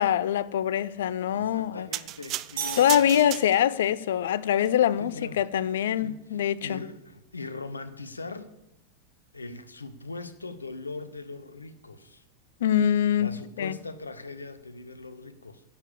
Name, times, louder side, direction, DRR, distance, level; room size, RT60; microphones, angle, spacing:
voice 1, 0.0-1.9 2.8-6.8 12.6-13.8, left 10 dB, 60° left, 0.5 m, -24 dB
voice 2, 1.3-3.1 5.0-5.4 6.0-8.6 9.3-12.2 13.2-15.6, left 3 dB, 80° left, 0.9 m, -40 dB
sound 1, 1.9-3.9 4.5-4.7, right 15 dB, 35° right, 0.4 m, -35 dB
sound 2, 2.6-4.0, right 6 dB, 55° right, 3.3 m, -38 dB
10.5 x 6.9 x 7.5 m
figure-of-eight pair, 90°, 0 cm